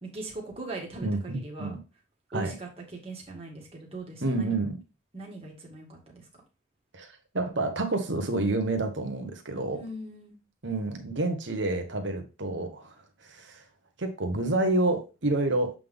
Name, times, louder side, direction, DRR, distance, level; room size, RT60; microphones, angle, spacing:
voice 1, 0.0-1.7 2.3-4.5 5.1-6.2 9.7-10.4, right 2 dB, 30° right, -1 dB, 1.9 m, -40 dB
voice 2, 1.0-1.8 2.3-2.5 4.2-4.8 6.9-7.1 7.3-9.8 10.6-12.9 13.2-13.6 14.0-15.7, right 2 dB, 60° right, 5 dB, 1.2 m, -28 dB
7.6 x 3.7 x 3.6 m, 0.30 s
head